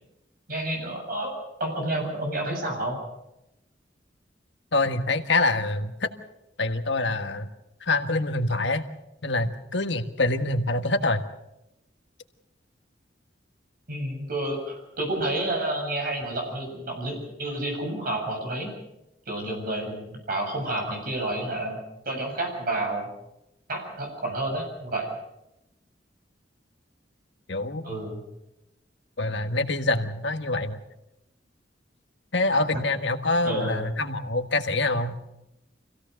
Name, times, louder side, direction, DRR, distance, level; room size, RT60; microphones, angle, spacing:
voice 1, 0.5-1.3 1.6-3.0 13.9-18.7 19.3-21.8 22.1-23.1 23.7-25.1 27.8-28.2 32.5-32.6 33.4-33.8, right 1 dB, 55° right, 2 dB, 7.6 m, -30 dB
voice 2, 4.7-6.1 6.6-7.5 7.8-8.8 9.2-11.2 27.5-27.9 29.2-30.8 32.3-35.1, left 2 dB, 80° left, 8 dB, 1.5 m, -25 dB
25.5 x 16.5 x 6.6 m, 0.88 s
head